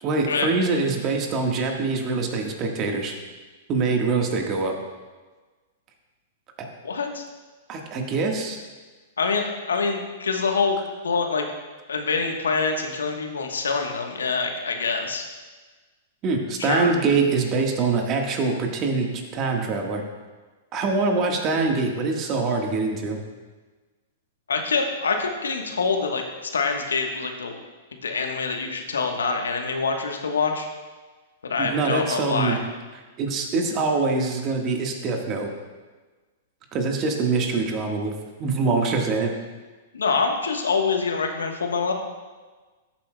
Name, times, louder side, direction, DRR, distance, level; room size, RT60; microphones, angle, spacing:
voice 1, 0.0-3.1 3.7-4.7 7.7-8.6 16.2-19.1 19.3-20.0 20.7-23.2 31.6-32.6 33.2-35.5 36.7-38.1 38.4-39.3, right 4 dB, 35° right, 2 dB, 1.4 m, -24 dB
voice 2, 6.8-7.2 9.2-11.4 11.9-15.2 16.6-16.9 24.5-27.6 28.0-30.7 31.5-32.6 39.9-41.9, left 4 dB, 85° left, 4 dB, 1.1 m, -25 dB
13.5 x 7.4 x 2.2 m, 1.3 s
hypercardioid pair, 110°, 0 cm